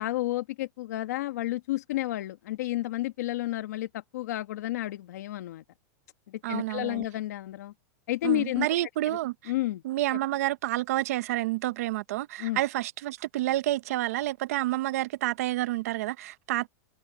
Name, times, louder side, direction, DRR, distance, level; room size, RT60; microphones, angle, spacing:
voice 1, 0.0-5.6 6.3-7.7 8.1-8.7 9.1-9.2 9.5-9.8 12.4-12.6, left 16 dB, 65° left, 1.3 m, -31 dB
voice 2, 6.4-7.1 8.2-9.5 9.8-16.7, right 15 dB, 55° right, 0.8 m, -29 dB
supercardioid pair, 170°, 9 cm